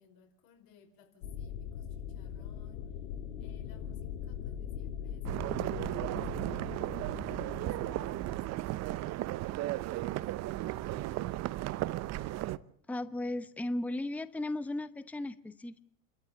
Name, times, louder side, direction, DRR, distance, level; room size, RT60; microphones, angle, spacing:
voice 1, 0.0-2.9 3.4-9.0 9.9-11.3, left 7 dB, 55° left, 3 dB, 5.0 m, -63 dB
sound 1, 1.2-8.4, left 8 dB, 75° left, 2.4 m, -41 dB
sound 2, 5.3-12.6, right 15 dB, 40° right, 0.8 m, -35 dB
voice 2, 12.9-15.8, left 1 dB, 5° left, 13 dB, 0.8 m, -36 dB
28.5 x 13.5 x 8.4 m, 0.63 s
supercardioid pair, 120°, 41 cm